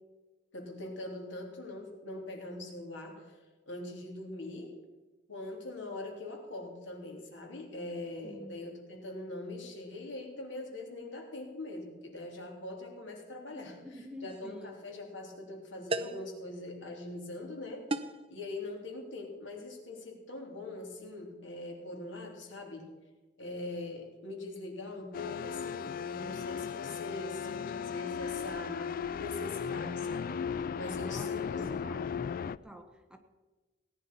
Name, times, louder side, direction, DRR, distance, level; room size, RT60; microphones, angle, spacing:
voice 1, 0.5-3.4 3.7-4.8 5.3-13.7 14.2-17.9 18.3-22.9 23.4-31.9, left 2 dB, 80° left, 1 dB, 3.5 m, -42 dB
voice 2, 8.2-8.6 13.5-14.7 31.1-33.2, equal, 5° right, 5 dB, 1.1 m, -49 dB
sound 1, 14.3-14.5 15.9-16.3 17.9-18.3, right 2 dB, 30° right, 0.6 m, -35 dB
sound 2, 25.1-32.6, left 7 dB, 50° left, 0.3 m, -36 dB
18.0 x 10.0 x 5.6 m, 1.2 s
head